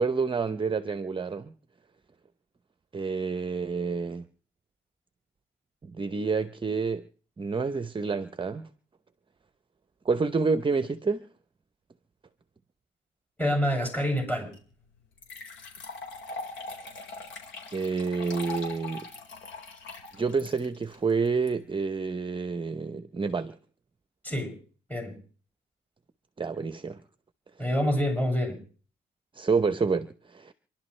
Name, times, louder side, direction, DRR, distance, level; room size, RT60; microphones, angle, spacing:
voice 1, 0.0-1.5 2.9-4.2 5.8-7.0 7.4-8.7 10.0-11.3 17.7-19.1 20.2-23.6 26.4-27.0 29.3-30.5, right 4 dB, 25° right, 0.8 m, -28 dB
voice 2, 13.4-14.5 24.2-24.6 24.9-25.2 27.6-28.6, equal, 10° left, 6.9 m, -27 dB
sound 1, 14.5-14.6 15.2-21.5, left 3 dB, 70° left, 4.7 m, -41 dB
27.5 x 11.5 x 3.3 m
cardioid pair, 90°, 20 cm